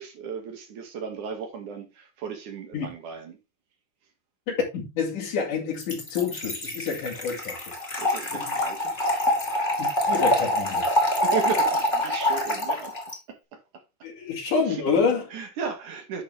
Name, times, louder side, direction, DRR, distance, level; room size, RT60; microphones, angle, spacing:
voice 1, 0.0-3.4 8.0-9.2 11.2-12.9 13.3-13.6 14.7-14.8 15.3-16.2, right 6 dB, 75° right, 3.6 m, -35 dB
voice 2, 4.5-7.7 8.3-8.4 9.8-11.0 14.0-15.2, left 5 dB, 85° left, 4.0 m, -28 dB
Trickle dribble / Fill (with liquid), 5.8-13.2, left 1 dB, 15° left, 2.2 m, -25 dB
10.0 x 6.6 x 3.5 m
omnidirectional pair, 3.5 m